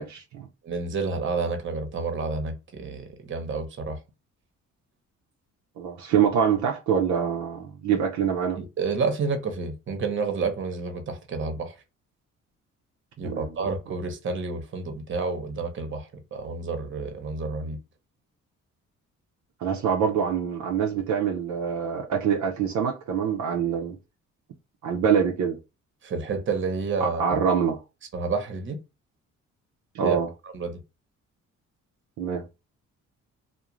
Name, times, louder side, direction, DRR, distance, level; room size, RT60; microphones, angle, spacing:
voice 1, 0.0-0.5 5.8-8.6 13.2-13.7 19.6-24.0 24.8-25.5 27.0-27.8 29.9-30.3 32.2-32.4, right 7 dB, 70° right, 0.6 m, -25 dB
voice 2, 0.6-4.0 8.6-11.7 13.2-17.8 26.0-27.4 28.1-28.8 30.0-30.2 30.5-30.8, right 4 dB, 40° right, 0.8 m, -29 dB
2.4 x 2.1 x 3.0 m
cardioid pair, 90°, 30 cm